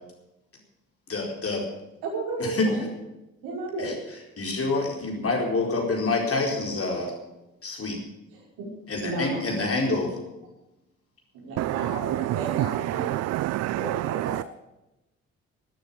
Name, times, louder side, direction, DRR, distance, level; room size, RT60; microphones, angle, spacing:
voice 1, 1.1-1.6 2.4-2.7 3.8-3.9 4.4-7.1 7.6-8.0 8.9-10.2, left 3 dB, 35° left, 1 dB, 4.5 m, -27 dB
voice 2, 2.0-2.8 3.4-4.0 8.3-8.7 9.0-9.6 11.3-13.1 13.7-14.4, right 2 dB, 65° right, -2 dB, 5.5 m, -33 dB
voice 3, 13.0-13.8 14.3-14.4, right 16 dB, 45° right, 18 dB, 0.4 m, -27 dB
13.0 x 11.5 x 7.3 m, 0.96 s
figure-of-eight pair, 40°, 39 cm